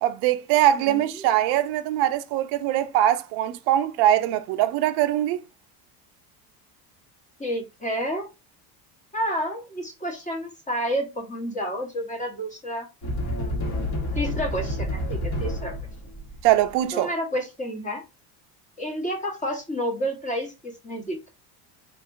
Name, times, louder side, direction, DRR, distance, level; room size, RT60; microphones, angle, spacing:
voice 1, 0.0-5.4 16.4-17.1, right 12 dB, 55° right, 0.5 m, -22 dB
voice 2, 0.8-1.2 7.4-8.3 9.1-12.9 13.4-13.8 14.1-15.7 16.9-18.0 18.8-21.3, equal, 15° left, 1.2 m, -30 dB
sound 1, 13.0-16.7, left 1 dB, 35° left, 1.4 m, -29 dB
3.8 x 2.6 x 2.5 m
supercardioid pair, 95°, 47 cm